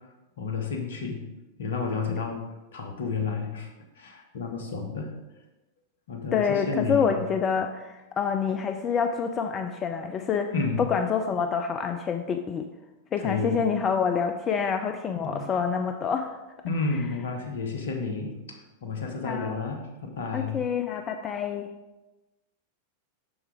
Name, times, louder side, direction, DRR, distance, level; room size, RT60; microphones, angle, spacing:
voice 1, 0.4-1.3 1.6-3.7 4.0-5.1 6.1-7.2 10.5-10.8 13.2-13.6 15.1-15.5 16.6-20.6, left 4 dB, 65° left, 3 dB, 1.1 m, -31 dB
voice 2, 6.3-12.7 13.1-16.4 19.2-19.6 20.3-21.7, left 6 dB, 25° left, 6 dB, 0.4 m, -27 dB
7.0 x 6.0 x 3.4 m, 1.1 s
figure-of-eight pair, 90°, 0 cm